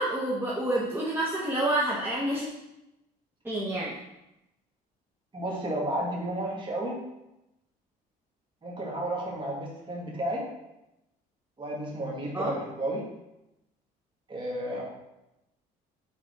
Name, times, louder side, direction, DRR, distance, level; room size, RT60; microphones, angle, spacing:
voice 1, 0.0-2.5 3.4-3.9 12.3-12.5, right 1 dB, 15° right, -6 dB, 1.0 m, -28 dB
voice 2, 5.3-7.0 8.6-10.4 11.6-13.0 14.3-14.8, right 1 dB, 30° right, -3 dB, 1.9 m, -32 dB
5.4 x 3.9 x 4.6 m, 0.91 s
cardioid pair, 110°, 17 cm